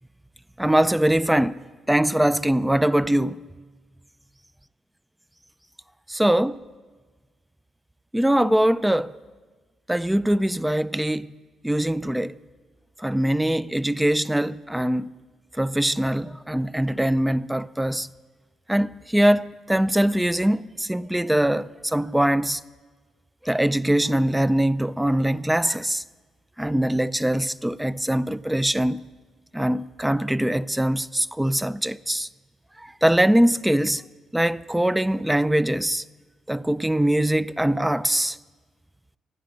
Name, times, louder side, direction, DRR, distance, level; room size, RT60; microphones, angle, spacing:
voice 1, 0.6-1.6 1.9-3.4 6.1-6.6 8.1-9.1 9.9-11.3 11.6-12.3 13.0-15.1 15.6-18.1 18.7-22.6 23.4-26.0 26.6-29.0 29.5-32.3 32.8-34.0 34.3-36.0 36.5-38.4, right 1 dB, 5° right, 0.4 m, -22 dB
26.0 x 9.6 x 5.2 m
cardioid pair, 90°, 0 cm